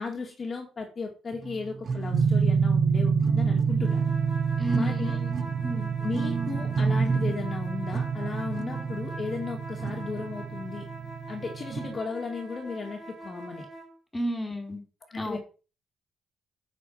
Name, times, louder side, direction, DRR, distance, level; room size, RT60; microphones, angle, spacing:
voice 1, 0.0-4.1 4.7-5.2 6.0-10.9 11.3-13.7 15.1-15.4, left 4 dB, 40° left, 1 dB, 2.4 m, -35 dB
sound 1, 1.3-2.7 3.2-5.0 5.3-9.0 9.8-10.5 11.7-12.0, right 4 dB, 45° right, 1.1 m, -32 dB
sound 2, 2.1-11.9, right 6 dB, 70° right, 1.5 m, -28 dB
sound 3, 3.7-13.9, right 1 dB, 30° right, 4.2 m, -43 dB
voice 2, 4.6-5.9 14.1-14.8 15.1-15.4, equal, 15° left, 4 dB, 4.6 m, -32 dB
8.7 x 7.4 x 5.8 m, 0.34 s
cardioid pair, 90°, 0 cm